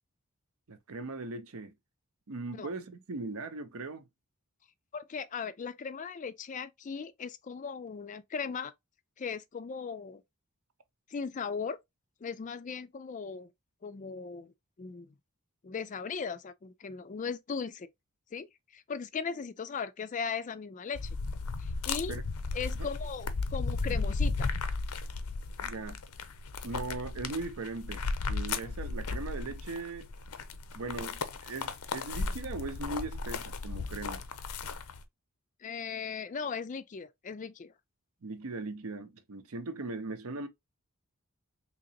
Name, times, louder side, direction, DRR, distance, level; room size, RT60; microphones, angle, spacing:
voice 1, 0.7-1.7 2.3-4.1 22.1-22.2 22.8-22.9 25.6-26.0 26.6-28.0 28.3-30.1 30.7-34.2 38.2-40.5, right 3 dB, 75° right, 0.7 m, -39 dB
voice 2, 4.9-8.7 9.2-10.2 11.1-11.8 12.2-13.5 13.8-14.5 14.8-15.1 15.6-17.9 18.3-18.5 18.7-21.2 21.6-22.1 22.5-24.5 35.6-37.7, left 5 dB, 35° left, 0.3 m, -38 dB
sound 1, 21.0-35.0, left 4 dB, 85° left, 0.6 m, -35 dB
3.8 x 2.9 x 2.8 m
head